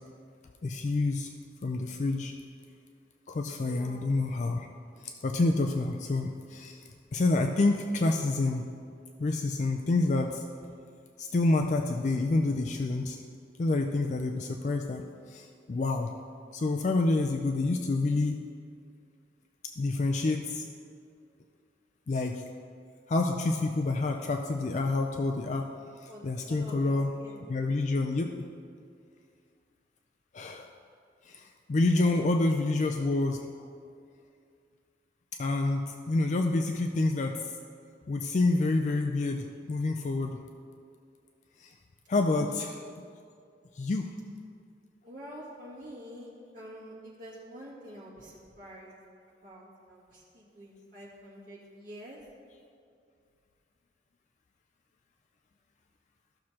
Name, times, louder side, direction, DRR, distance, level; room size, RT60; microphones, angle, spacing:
voice 1, 0.6-1.3 1.6-2.3 3.3-4.7 5.0-6.8 7.1-8.7 9.2-10.4 11.2-13.2 13.6-16.1 16.5-18.4 19.8-20.6 22.1-22.4 23.1-25.7 26.0-27.1 27.5-28.3 30.3-30.7 31.3-33.4 35.4-37.5 38.1-40.4 41.6-41.7 42.1-42.8 43.8-44.1, left 2 dB, 40° left, 3 dB, 0.3 m, -28 dB
voice 2, 3.6-4.2 26.1-27.4 32.0-32.4 42.3-42.5 42.7-43.1 45.0-49.0 49.4-52.3, equal, 45° right, -6 dB, 2.1 m, -47 dB
14.0 x 6.3 x 2.9 m, 2.3 s
head